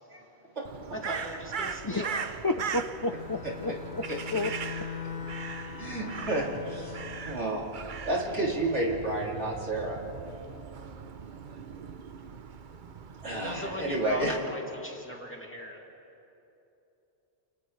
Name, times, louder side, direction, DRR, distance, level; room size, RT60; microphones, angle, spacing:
Crow, 0.6-14.4, right 6 dB, 50° right, 0.8 m, -40 dB
voice 1, 0.9-2.2 13.3-15.8, equal, 10° left, -2 dB, 2.5 m, -39 dB
voice 2, 2.4-4.0 4.3-4.5 5.6-5.9, left 2 dB, 30° left, 6 dB, 0.4 m, -31 dB
Bowed string instrument, 3.0-7.5, left 7 dB, 65° left, 1.0 m, -41 dB
voice 3, 5.8-7.6 8.0-10.0 13.2-14.3, right 1 dB, 75° right, -4 dB, 3.4 m, -30 dB
29.5 x 29.5 x 3.3 m, 2.9 s
omnidirectional pair, 1.2 m